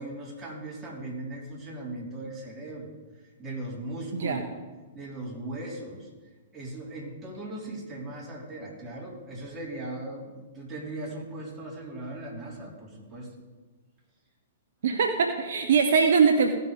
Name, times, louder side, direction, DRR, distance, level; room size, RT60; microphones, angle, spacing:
voice 1, 0.0-2.9 3.4-4.4 4.9-6.1 6.5-13.3, right 2 dB, 20° right, -4 dB, 3.5 m, -38 dB
voice 2, 14.8-16.5, right 5 dB, 60° right, 4 dB, 0.9 m, -22 dB
16.0 x 5.6 x 5.1 m, 1.3 s
figure-of-eight pair, 115°, 0 cm